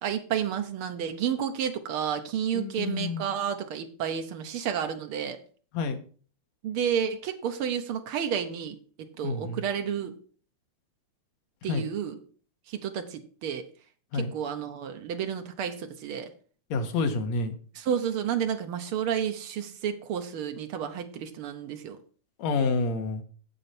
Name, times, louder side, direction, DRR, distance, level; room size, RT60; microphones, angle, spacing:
voice 1, 0.0-5.4 6.6-10.1 11.6-12.2 12.7-13.7 14.1-16.3 17.7-22.0, right 8 dB, 65° right, 6 dB, 1.4 m, -31 dB
voice 2, 2.5-3.3 5.7-6.0 9.2-9.6 11.7-11.8 14.1-14.3 16.7-17.6 22.4-23.2, left 4 dB, 70° left, 6 dB, 2.3 m, -28 dB
8.4 x 8.0 x 4.3 m, 0.41 s
omnidirectional pair, 3.4 m